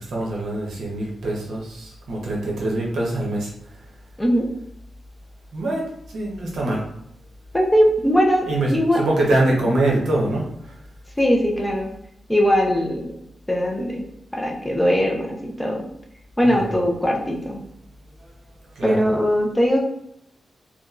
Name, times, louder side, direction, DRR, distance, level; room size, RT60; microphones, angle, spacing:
voice 1, 0.0-3.5 5.5-6.8 8.5-10.8 16.4-16.8 18.8-19.0, right 1 dB, 80° right, -3 dB, 0.8 m, -24 dB
voice 2, 7.5-9.0 11.2-11.9 12.3-13.1 13.5-14.0 14.3-15.8 16.4-17.6 18.8-19.9, equal, 5° left, 0 dB, 0.3 m, -20 dB
2.9 x 2.3 x 2.4 m, 0.76 s
wide cardioid pair, 175°, 0 cm